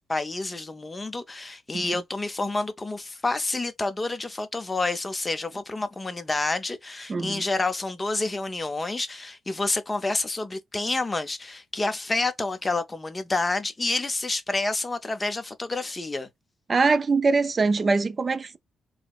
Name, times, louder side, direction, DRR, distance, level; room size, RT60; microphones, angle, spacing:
voice 1, 0.1-16.3, left 2 dB, 20° left, 0.6 m, -29 dB
voice 2, 7.1-7.4 16.7-18.6, right 4 dB, 35° right, 0.3 m, -22 dB
4.0 x 2.0 x 2.3 m
cardioid pair, 105°, 0 cm